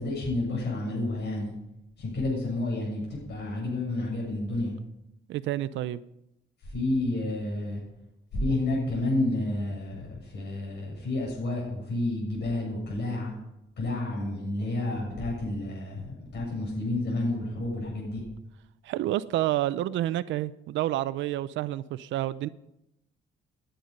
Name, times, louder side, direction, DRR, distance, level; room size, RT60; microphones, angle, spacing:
voice 1, 0.0-1.5 2.0-4.7 6.7-7.8 8.3-13.3 13.8-18.2, left 2 dB, 65° left, 6.9 m, -30 dB
voice 2, 5.3-6.0 18.8-22.5, right 14 dB, 80° right, 0.6 m, -29 dB
19.5 x 10.0 x 5.3 m
cardioid pair, 115°, 19 cm